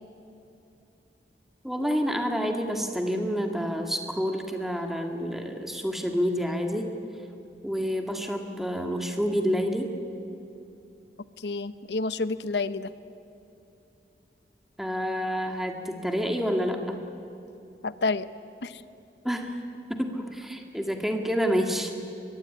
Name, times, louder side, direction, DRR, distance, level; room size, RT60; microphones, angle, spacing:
voice 1, 1.6-6.9 7.6-9.9 14.8-17.0 19.2-19.6 19.9-21.9, equal, ahead, 3 dB, 2.0 m, -28 dB
voice 2, 11.4-12.9 17.8-18.3 18.6-18.8, left 3 dB, 80° left, 14 dB, 0.9 m, -29 dB
23.5 x 21.5 x 10.0 m, 2.8 s
head